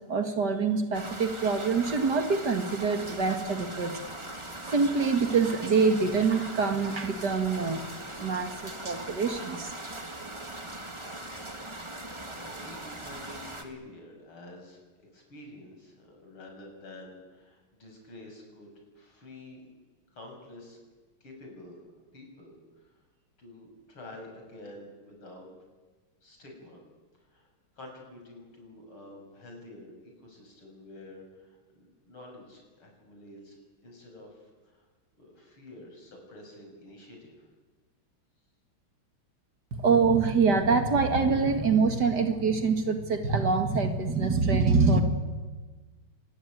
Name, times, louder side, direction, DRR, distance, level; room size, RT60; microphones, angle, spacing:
voice 1, 0.1-3.9 4.7-7.8 8.2-9.7 39.7-45.0, right 4 dB, 50° right, 6 dB, 2.5 m, -25 dB
sound 1, 0.9-13.6, right 1 dB, 15° right, 2.0 m, -40 dB
voice 2, 12.1-19.7 20.1-20.8 21.2-21.8 22.1-22.9 23.4-25.5 26.2-26.8 27.2-27.5 27.7-34.9 35.2-37.5, left 1 dB, 80° left, 1 dB, 7.6 m, -49 dB
25.5 x 21.0 x 9.4 m, 1.3 s
omnidirectional pair, 2.3 m